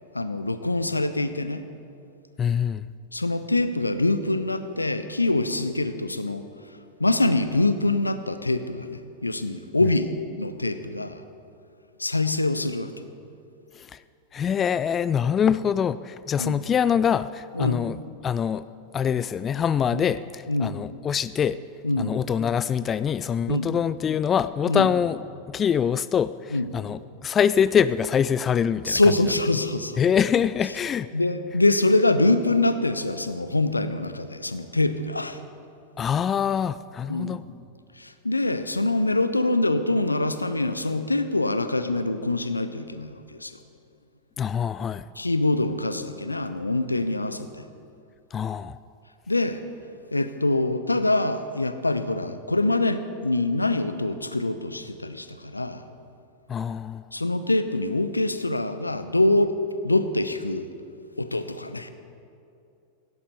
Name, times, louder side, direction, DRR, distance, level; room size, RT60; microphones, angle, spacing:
voice 1, 0.1-1.6 3.1-6.4 7.0-11.2 12.0-12.9 16.4-16.6 17.5-17.8 19.9-20.0 20.5-20.8 21.8-22.2 23.5-23.8 24.7-24.9 26.5-26.7 28.9-30.0 31.1-35.4 37.1-37.4 38.0-43.6 45.2-47.6 49.3-49.6 50.1-55.8 57.1-59.5 59.8-60.7 61.2-61.9, left 2 dB, 85° left, 11 dB, 0.8 m, -24 dB
voice 2, 2.4-2.9 13.7-14.0 14.3-18.0 18.2-18.6 18.9-21.6 22.0-25.2 25.5-29.2 30.0-31.1 36.0-37.4 44.4-45.1 48.3-48.8 56.5-57.0, left 8 dB, 25° left, 16 dB, 0.3 m, -24 dB
17.5 x 16.5 x 4.2 m, 2.5 s
figure-of-eight pair, 90°, 0 cm